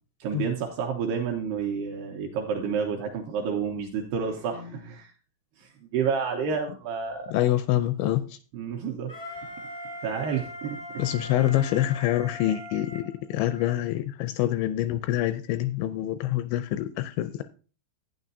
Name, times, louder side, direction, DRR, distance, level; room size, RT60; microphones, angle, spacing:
voice 1, 0.2-5.1 5.6-7.3 8.5-9.1 10.0-10.8, right 6 dB, 80° right, 2.4 m, -30 dB
voice 2, 7.3-8.2 11.0-13.0 13.3-17.4, left 13 dB, 85° left, 2.7 m, -26 dB
Wind instrument woodwind instrument, 9.1-13.8, left 1 dB, 40° left, 0.5 m, -41 dB
12.0 x 9.0 x 2.7 m
omnidirectional pair, 5.5 m